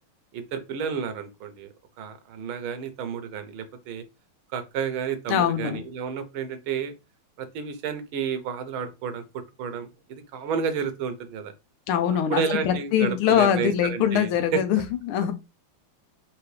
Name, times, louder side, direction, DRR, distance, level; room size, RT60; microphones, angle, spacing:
voice 1, 0.3-4.0 4.5-6.9 7.4-9.2 9.6-11.5 12.3-14.6, right 6 dB, 75° right, 1.5 m, -31 dB
voice 2, 5.3-5.8 11.9-15.3, left 9 dB, 90° left, 1.6 m, -23 dB
4.6 x 2.9 x 3.1 m
omnidirectional pair, 2.3 m